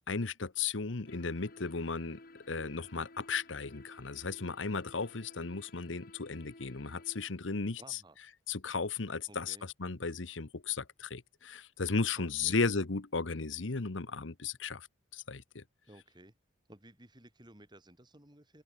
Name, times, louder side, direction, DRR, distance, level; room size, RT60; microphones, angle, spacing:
voice 1, 0.1-2.2 2.5-8.0 8.5-14.9 15.1-15.6, left 4 dB, 80° left, 1.1 m, -35 dB
sound 1, 1.1-7.3, left 2 dB, 50° left, 1.9 m, -55 dB
voice 2, 7.8-8.2 9.3-9.7 12.1-12.6 15.8-16.4 16.7-18.6, right 1 dB, 25° right, 4.3 m, -56 dB
open air
head